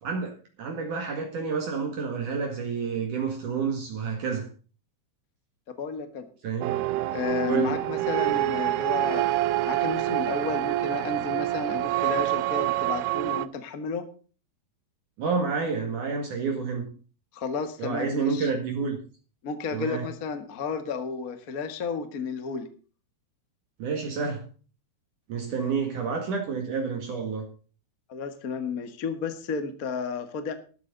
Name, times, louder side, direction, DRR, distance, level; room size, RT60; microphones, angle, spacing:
voice 1, 0.0-4.5 6.4-6.8 7.5-7.8 15.2-16.9 17.8-19.0 19.7-20.1 23.8-24.5 25.3-27.5, right 5 dB, 55° right, 3.2 m, -29 dB
voice 2, 5.8-6.2 7.1-9.3 9.7-14.0 17.3-18.5 19.4-22.7 28.1-30.5, left 5 dB, 50° left, 1.0 m, -32 dB
sound 1, 6.6-13.5, right 15 dB, 85° right, 2.8 m, -26 dB
13.5 x 12.5 x 4.0 m
omnidirectional pair, 4.6 m